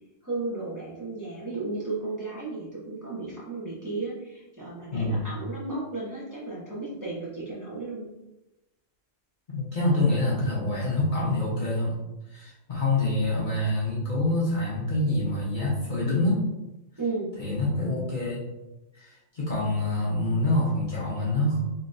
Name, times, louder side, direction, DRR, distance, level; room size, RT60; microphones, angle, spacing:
voice 1, 0.2-8.1 17.0-17.4, right 3 dB, 15° right, -9 dB, 1.1 m, -34 dB
voice 2, 4.9-5.2 9.5-12.0 12.3-16.4 17.4-18.4 18.9-21.6, left 2 dB, 40° left, -7 dB, 1.1 m, -26 dB
4.3 x 3.1 x 2.6 m, 0.97 s
omnidirectional pair, 1.3 m